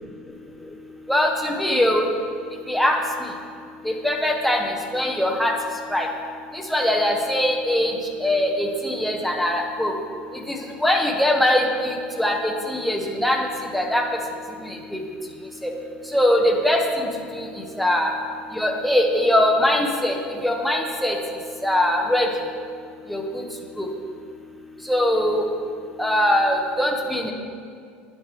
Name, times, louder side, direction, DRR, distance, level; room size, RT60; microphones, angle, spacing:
voice 1, 1.1-2.1 2.7-3.0 3.8-4.6 4.9-5.5 5.9-6.1 6.7-7.9 8.2-9.9 10.5-13.5 13.7-14.0 14.9-15.0 15.6-15.7 16.1-17.1 17.3-17.5 17.8-18.1 18.5-20.1 20.4-21.2 21.6-22.3 23.1-23.2 23.8-23.9 24.9-25.4 26.0-27.3, left 1 dB, ahead, 1 dB, 0.9 m, -21 dB
10.0 x 4.4 x 3.5 m, 2.2 s
hypercardioid pair, 85°, 5 cm